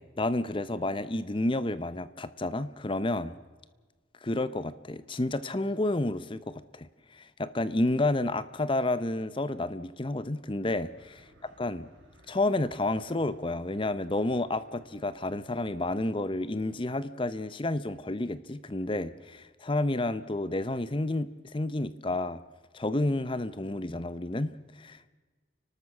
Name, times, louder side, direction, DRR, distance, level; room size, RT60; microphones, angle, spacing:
voice 1, 0.0-3.4 4.2-6.9 7.1-11.2 11.6-11.9 12.3-22.4 22.7-25.1, left 2 dB, 25° left, 15 dB, 0.7 m, -30 dB
sound 1, 10.7-16.1, equal, 90° right, 5.0 m, -59 dB
30.0 x 12.5 x 7.2 m, 1.4 s
head